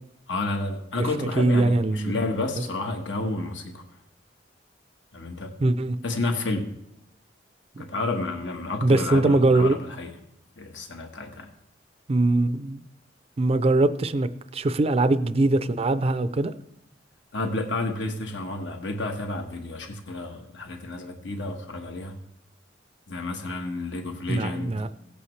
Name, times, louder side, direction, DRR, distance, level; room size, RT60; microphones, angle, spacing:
voice 1, 0.3-3.8 5.1-5.5 6.0-6.7 7.8-10.1 10.6-11.5 17.3-22.1 23.1-24.9, left 2 dB, 75° left, 1.4 m, -30 dB
voice 2, 1.0-2.1 5.6-6.0 8.8-9.8 12.1-12.8 13.4-16.5 24.3-24.9, right 2 dB, 35° right, 0.4 m, -22 dB
17.0 x 8.5 x 3.2 m
head